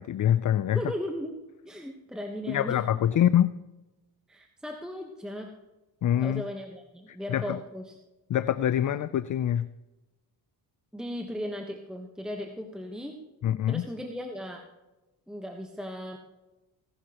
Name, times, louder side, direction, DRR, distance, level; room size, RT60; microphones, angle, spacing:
voice 1, 0.0-0.8 2.5-3.5 6.0-6.4 7.3-7.6 8.3-9.7 13.4-13.9, left 10 dB, 45° left, 15 dB, 0.4 m, -25 dB
voice 2, 0.7-1.4 1.6-2.8 4.3-5.5 6.1-8.0 10.9-13.2 13.7-14.6 15.3-16.2, equal, ahead, 2 dB, 1.1 m, -37 dB
16.5 x 11.0 x 3.0 m, 1.0 s
cardioid pair, 80°, 47 cm